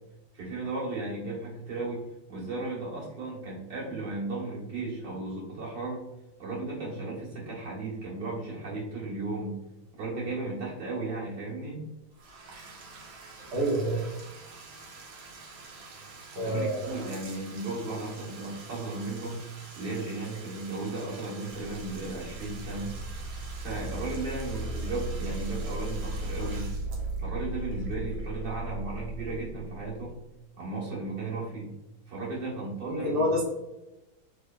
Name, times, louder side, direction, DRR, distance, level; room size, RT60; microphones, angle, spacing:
voice 1, 0.3-6.0 6.4-9.6 10.0-11.8 16.3-19.4 19.7-23.0 23.6-26.7 27.2-30.2 30.6-31.8 32.1-33.2, right 2 dB, 60° right, -6 dB, 2.0 m, -35 dB
Bathtub (filling or washing), 12.1-28.8, right 3 dB, 85° right, 1.6 m, -48 dB
voice 2, 13.5-14.0 16.3-17.1 32.8-33.4, equal, 45° right, -5 dB, 1.2 m, -28 dB
sound 1, 21.7-30.3, right 2 dB, 90° left, 1.4 m, -36 dB
3.9 x 3.3 x 2.2 m, 0.97 s
omnidirectional pair, 2.1 m